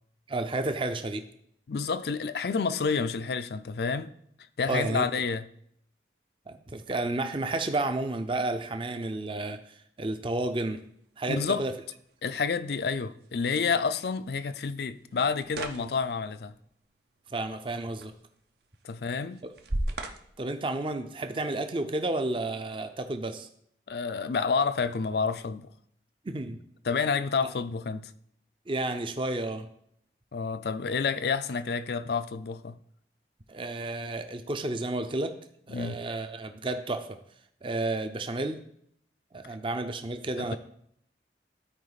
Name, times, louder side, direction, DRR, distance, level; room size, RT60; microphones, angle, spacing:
voice 1, 0.3-1.2 4.7-5.0 6.5-10.8 11.2-11.7 17.3-18.1 20.4-23.5 26.2-26.6 28.7-29.7 33.5-35.3 35.7-37.2 37.6-38.6 39.3-40.6, right 2 dB, 30° right, 0.5 m, -31 dB
voice 2, 1.7-4.1 4.6-5.5 11.3-11.7 12.2-16.5 18.8-19.4 23.9-25.7 26.8-28.1 30.3-32.8 35.7-36.0 40.4-40.6, left 5 dB, 60° left, 0.4 m, -29 dB
sound 1, 10.8-21.5, right 1 dB, 65° right, 0.8 m, -41 dB
12.5 x 4.7 x 4.0 m
head